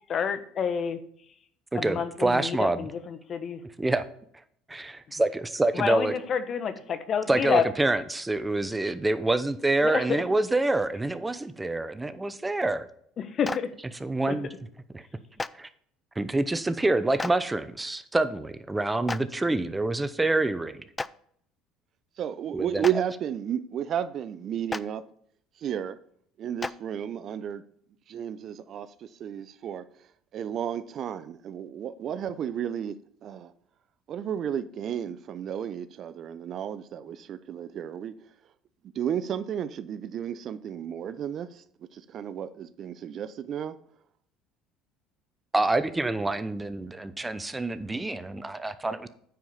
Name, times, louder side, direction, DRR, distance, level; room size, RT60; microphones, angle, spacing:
voice 1, 0.1-1.0 1.7-3.6 5.7-7.6 9.8-10.0 13.2-13.7 14.3-14.4, left 7 dB, 45° left, 1.2 m, -28 dB
voice 2, 1.7-2.9 3.8-4.1 4.7-6.1 7.3-12.9 14.0-14.5 14.9-15.0 15.5-15.7 16.2-20.8 22.5-22.8 45.5-49.1, right 2 dB, 10° right, 0.8 m, -27 dB
Clapping, 13.4-13.6 15.4-15.5 17.2-17.3 19.1-19.2 21.0-21.1 22.8-22.9 24.7-24.8 26.6-26.7, left 3 dB, 15° left, 0.4 m, -30 dB
voice 3, 22.2-25.0 25.6-26.0 26.4-27.6 28.1-33.5 34.1-38.1 38.8-41.6 41.9-43.8, right 9 dB, 50° right, 0.6 m, -33 dB
9.3 x 4.9 x 7.1 m
supercardioid pair, 100°, 0 cm